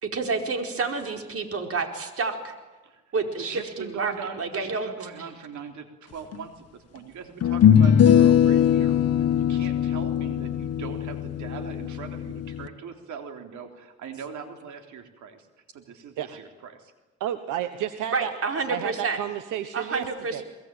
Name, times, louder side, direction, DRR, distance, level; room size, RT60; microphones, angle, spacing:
voice 1, 0.0-2.5 3.1-4.1 4.4-4.9 18.1-19.2 19.7-20.4, right 4 dB, 50° right, 4 dB, 4.7 m, -29 dB
voice 2, 2.8-15.5 15.7-16.9, right 6 dB, 75° right, 5 dB, 3.4 m, -40 dB
sound 1, 6.3-6.4 7.4-12.7, left 9 dB, 55° left, 1.4 m, -20 dB
voice 3, 17.2-18.3 18.7-20.1 20.3-20.4, right 11 dB, 90° right, 10 dB, 1.3 m, -31 dB
23.5 x 21.5 x 8.9 m, 1.2 s
cardioid pair, 90°, 30 cm